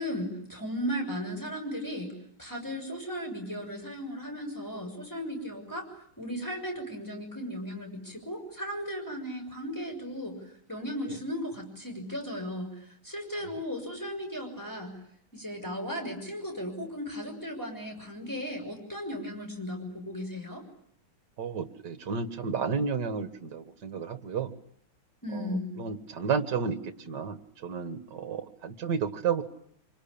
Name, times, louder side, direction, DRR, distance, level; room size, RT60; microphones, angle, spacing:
voice 1, 0.0-2.1 2.4-5.9 6.2-15.0 15.3-20.6 25.2-25.7, equal, 10° left, 2 dB, 6.4 m, -36 dB
voice 2, 21.4-24.5 25.3-29.4, right 6 dB, 55° right, 10 dB, 2.1 m, -32 dB
26.0 x 24.5 x 8.7 m, 0.68 s
omnidirectional pair, 2.3 m